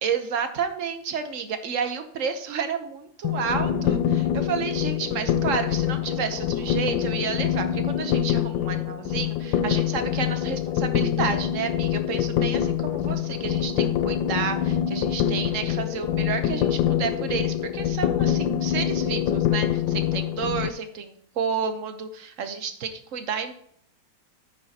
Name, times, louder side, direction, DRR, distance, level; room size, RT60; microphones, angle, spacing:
voice 1, 0.0-23.5, right 6 dB, 55° right, 8 dB, 1.0 m, -31 dB
sound 1, 3.2-20.7, left 10 dB, 90° left, 1.3 m, -25 dB
9.9 x 9.1 x 2.8 m, 0.64 s
omnidirectional pair, 2.0 m